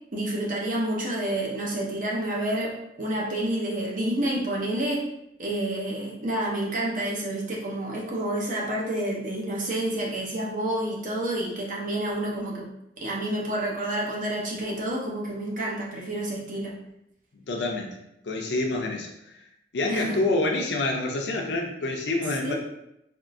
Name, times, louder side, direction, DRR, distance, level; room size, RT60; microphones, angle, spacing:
voice 1, 0.1-5.1 5.4-12.7 13.0-16.8 19.9-20.2 22.4-22.5, right 1 dB, 45° right, -3 dB, 0.7 m, -29 dB
voice 2, 17.3-18.0 18.2-19.4 19.7-22.5, left 2 dB, 70° left, 1 dB, 0.5 m, -27 dB
3.5 x 2.4 x 2.5 m, 0.82 s
head